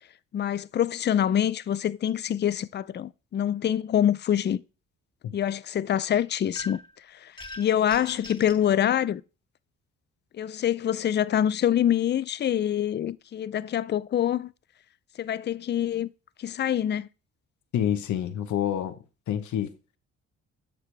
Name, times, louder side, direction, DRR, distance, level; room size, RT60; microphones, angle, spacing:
voice 1, 0.3-4.6 5.3-6.8 7.2-7.3 7.6-9.2 10.3-14.5 15.2-16.1 16.4-17.1, left 10 dB, 35° left, 0.4 m, -25 dB
sound 1, 6.5-6.9 7.4-8.6, left 2 dB, 15° left, 1.6 m, -42 dB
voice 2, 17.7-19.0 19.3-19.7, left 10 dB, 75° left, 1.2 m, -27 dB
10.5 x 6.7 x 3.4 m
cardioid pair, 90°, 30 cm